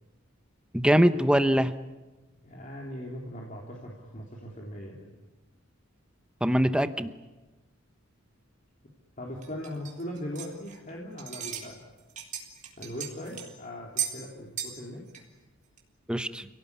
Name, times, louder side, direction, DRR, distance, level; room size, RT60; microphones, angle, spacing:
voice 1, 0.7-1.7 6.4-7.1 16.1-16.5, equal, 5° right, 10 dB, 1.0 m, -22 dB
voice 2, 2.4-5.1 9.2-11.9 12.8-15.1, equal, 40° left, -2 dB, 3.5 m, -39 dB
sound 1, 9.4-10.9 11.2-11.7 12.0-13.5 14.0-14.2 14.6-14.8 15.1-15.2 15.8-15.9, right 8 dB, 35° right, 3.9 m, -36 dB
29.0 x 18.0 x 9.8 m, 1.1 s
head